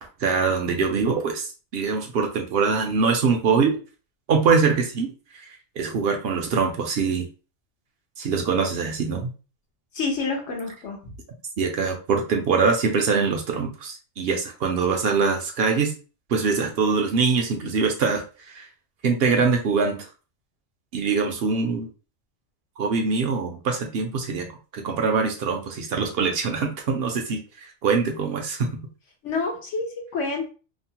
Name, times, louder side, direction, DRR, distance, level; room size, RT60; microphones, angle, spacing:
voice 1, 0.2-3.8 4.3-5.1 5.8-7.3 8.2-9.3 11.6-15.9 16.3-18.7 19.0-20.1 20.9-21.9 22.8-24.5 24.7-27.4 27.8-28.7, right 5 dB, 65° right, 3 dB, 0.7 m, -23 dB
voice 2, 9.9-11.1 29.2-30.5, left 4 dB, 85° left, 2 dB, 1.2 m, -28 dB
3.0 x 2.0 x 2.8 m, 0.35 s
omnidirectional pair, 1.2 m